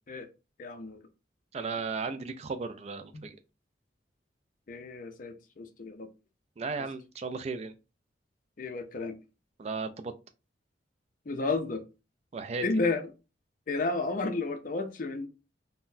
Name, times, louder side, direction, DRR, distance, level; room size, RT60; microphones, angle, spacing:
voice 1, 0.6-1.0 4.7-6.1 8.6-9.2 11.3-11.8 12.6-13.0 13.7-15.3, left 3 dB, 45° left, 0.5 m, -32 dB
voice 2, 1.5-3.4 6.6-7.7 9.6-10.1 12.3-12.6, right 4 dB, 35° right, 0.3 m, -35 dB
3.8 x 2.1 x 2.5 m
head